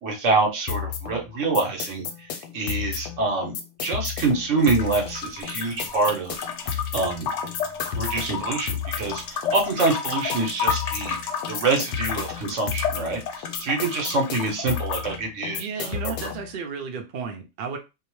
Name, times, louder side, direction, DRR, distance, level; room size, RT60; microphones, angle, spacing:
voice 1, 0.0-2.1 2.5-3.5 3.8-6.4 6.7-7.3 7.9-11.2 11.5-16.3, right 3 dB, 60° right, 1 dB, 1.1 m, -26 dB
sound 1, 0.7-16.5, left 8 dB, 85° left, 1.1 m, -33 dB
sound 2, 4.6-15.2, left 6 dB, 65° left, 0.8 m, -32 dB
voice 2, 15.5-17.8, right 5 dB, 80° right, 3 dB, 0.4 m, -33 dB
2.7 x 2.0 x 2.9 m, 0.27 s
omnidirectional pair, 1.6 m